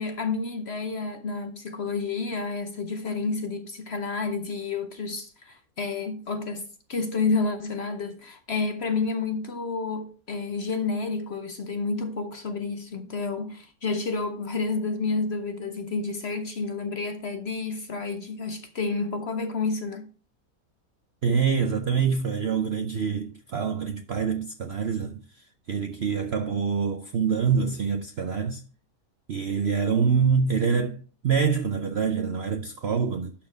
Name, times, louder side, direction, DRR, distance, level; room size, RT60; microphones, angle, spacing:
voice 1, 0.0-20.1, left 4 dB, 50° left, 0.8 m, -30 dB
voice 2, 21.2-28.6 29.3-33.3, right 6 dB, 60° right, 0.6 m, -26 dB
11.5 x 4.3 x 4.9 m
omnidirectional pair, 1.8 m